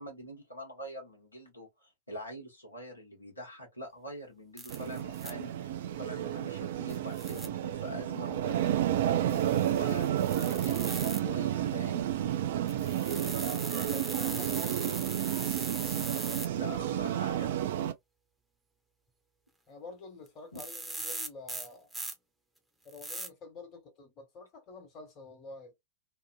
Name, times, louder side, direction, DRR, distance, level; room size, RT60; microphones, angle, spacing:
voice 1, 0.0-5.7 6.0-12.1 16.5-17.9 20.5-20.6, equal, 85° left, 0.9 m, -44 dB
sound 1, 4.6-5.3 6.9-7.5 9.3-11.2 12.7-16.5 20.3-20.4 20.6-22.1 22.9-23.3, right 2 dB, 5° right, 0.6 m, -40 dB
sound 2, 4.7-17.9, right 11 dB, 55° right, 0.3 m, -31 dB
voice 2, 13.2-14.7 19.7-21.9 22.8-25.7, left 3 dB, 35° left, 1.2 m, -48 dB
2.9 x 2.0 x 2.3 m
figure-of-eight pair, 90°, 0 cm